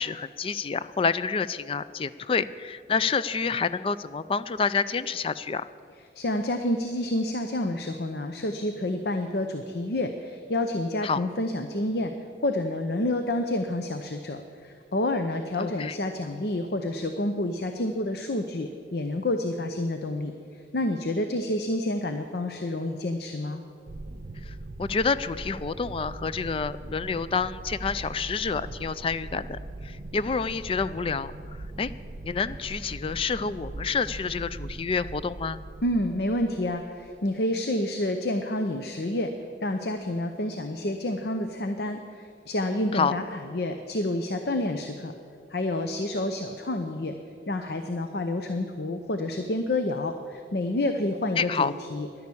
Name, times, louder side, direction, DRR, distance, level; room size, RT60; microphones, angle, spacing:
voice 1, 0.0-5.7 11.0-11.2 15.6-15.9 24.5-31.3 31.8-31.9 32.2-35.6 42.9-43.1 51.4-51.7, left 5 dB, 30° left, 15 dB, 0.3 m, -28 dB
voice 2, 6.1-12.1 12.4-23.6 35.8-39.3 39.6-45.1 45.5-47.1 47.5-52.1, left 1 dB, 60° left, 7 dB, 0.7 m, -29 dB
sound 1, 23.9-37.1, right 2 dB, 55° right, 0.7 m, -40 dB
11.0 x 11.0 x 8.5 m, 2.4 s
head